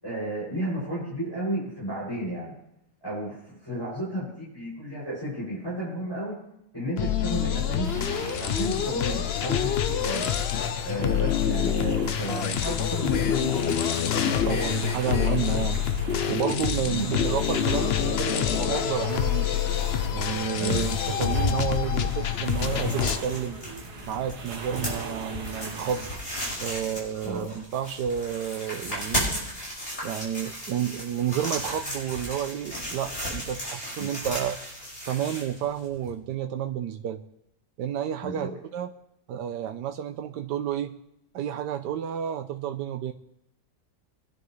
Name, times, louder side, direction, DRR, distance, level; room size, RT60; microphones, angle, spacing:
voice 1, 0.0-2.5 3.0-6.3 6.7-8.0 8.4-10.3 10.8-14.4 16.9-17.1 20.6-20.8 27.2-27.5 34.0-34.1 38.2-38.5, equal, 15° left, -10 dB, 6.5 m, -33 dB
sound 1, 7.0-23.2, left 9 dB, 65° left, 0.6 m, -26 dB
sound 2, 7.8-26.2, right 3 dB, 65° right, 2.0 m, -40 dB
voice 2, 14.3-15.8 16.3-19.5 20.1-23.6 24.1-26.1 26.6-29.3 30.0-34.6 35.1-37.2 37.8-38.9 39.3-40.9 41.3-43.1, right 9 dB, 85° right, 5 dB, 1.3 m, -30 dB
sound 3, 21.2-36.1, equal, 35° left, 6.0 m, -35 dB
24.0 x 10.5 x 3.2 m, 0.81 s
omnidirectional pair, 1.8 m